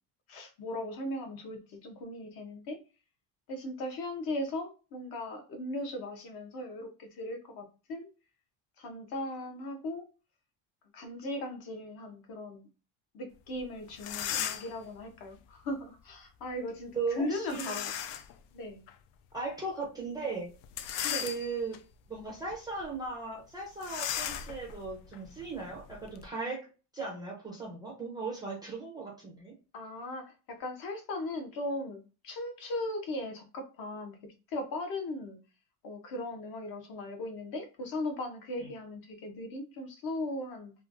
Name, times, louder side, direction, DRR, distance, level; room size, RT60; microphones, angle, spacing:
voice 1, 0.3-2.8 3.5-8.1 8.8-10.1 10.9-12.7 13.1-18.2 18.5-18.8 21.0-21.3 29.7-34.2 34.5-35.4 35.8-40.7, left 1 dB, 50° left, 0.8 m, -38 dB
sound 1, 13.6-13.7 13.9-14.8 17.5-18.3 18.9-19.0 20.6-21.8 22.3-22.5 22.8-22.9 23.8-26.3, left 10 dB, 80° left, 0.5 m, -36 dB
voice 2, 16.9-17.8 19.3-20.5 21.1-21.8 22.1-26.6 26.9-29.5, right 4 dB, 10° right, 0.4 m, -37 dB
3.1 x 2.3 x 2.5 m
cardioid pair, 160°, 46 cm